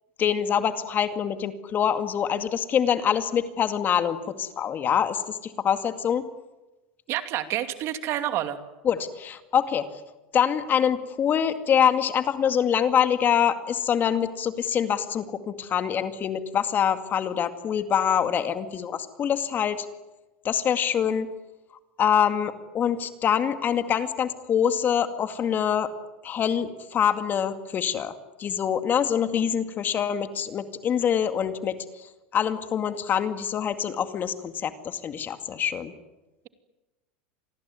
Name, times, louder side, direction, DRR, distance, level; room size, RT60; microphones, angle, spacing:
voice 1, 0.2-6.3 8.8-9.9 10.3-19.9 20.4-21.3 22.0-25.9 26.2-28.1 28.4-32.1 32.3-35.9, left 8 dB, 35° left, 9 dB, 2.2 m, -25 dB
voice 2, 7.1-8.6, right 12 dB, 50° right, 9 dB, 2.6 m, -28 dB
26.5 x 20.0 x 9.6 m, 1.1 s
hypercardioid pair, 105°, 6 cm